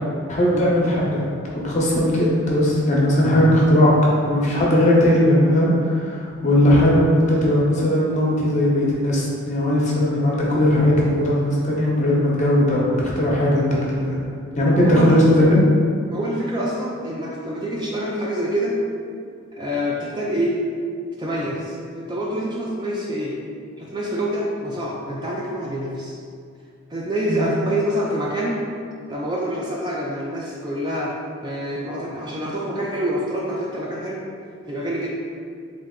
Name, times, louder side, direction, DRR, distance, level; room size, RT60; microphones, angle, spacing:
voice 1, 0.3-1.2 1.5-3.9 4.3-14.2 14.6-15.6 27.3-27.4, left 1 dB, 35° left, -4 dB, 0.8 m, -18 dB
voice 2, 14.8-15.2 16.1-18.8 19.5-20.6 21.2-23.4 23.8-26.2 26.9-28.6 29.1-31.2 31.4-34.3 34.7-35.1, equal, 20° right, -3 dB, 0.3 m, -26 dB
3.7 x 3.3 x 3.7 m, 2.2 s
head